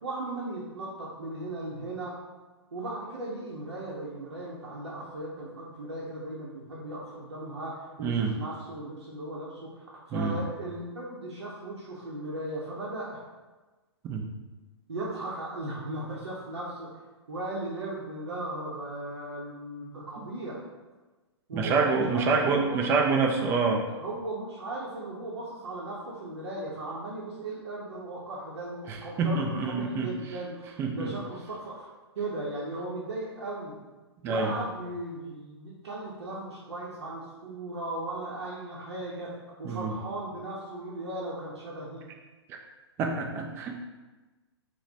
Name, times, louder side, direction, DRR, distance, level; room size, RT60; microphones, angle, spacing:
voice 1, 0.0-2.2 2.7-13.2 14.9-17.0 17.3-20.6 21.5-22.8 23.1-23.5 24.0-31.9 32.2-33.8 34.2-39.3 39.6-42.0, right 2 dB, 65° right, -7 dB, 0.7 m, -37 dB
voice 2, 8.0-8.3 10.1-10.4 14.0-14.3 21.5-23.8 28.9-30.1 30.8-31.1 34.2-34.5 39.6-39.9 43.0-43.8, right 4 dB, 15° right, 1 dB, 0.3 m, -26 dB
3.8 x 2.1 x 2.8 m, 1.2 s
figure-of-eight pair, 115°, 14 cm